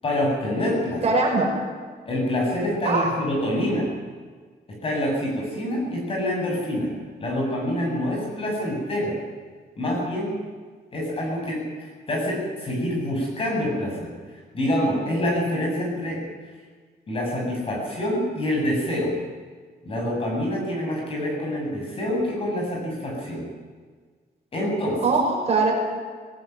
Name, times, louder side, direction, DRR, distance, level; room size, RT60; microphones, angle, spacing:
voice 1, 0.0-1.0 2.1-3.9 4.8-6.9 7.2-9.2 9.8-10.3 10.9-14.1 14.5-16.2 17.1-19.1 19.8-23.5 24.5-25.0, left 1 dB, 35° left, -1 dB, 7.5 m, -26 dB
voice 2, 1.0-1.5 2.8-3.1 25.0-25.7, right 3 dB, 40° right, -1 dB, 5.7 m, -21 dB
19.0 x 18.0 x 9.3 m, 1.5 s
wide cardioid pair, 165°, 17 cm